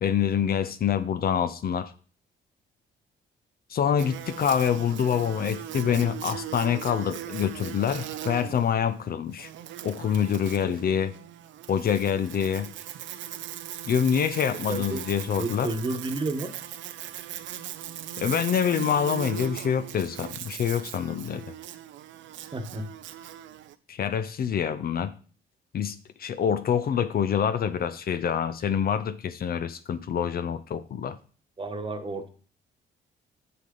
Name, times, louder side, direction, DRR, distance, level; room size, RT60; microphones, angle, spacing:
voice 1, 0.0-1.9 3.7-9.5 9.8-11.1 11.7-12.7 13.9-15.7 18.2-21.4 23.9-25.1 25.7-31.2, left 8 dB, 50° left, 12 dB, 0.5 m, -26 dB
Buzz, 4.0-23.7, right 11 dB, 75° right, 0.6 m, -39 dB
voice 2, 14.7-15.0 15.4-16.5 22.5-22.8 31.6-32.3, right 2 dB, 25° right, 6 dB, 1.2 m, -31 dB
6.8 x 6.7 x 3.8 m, 0.40 s
cardioid pair, 90°, 20 cm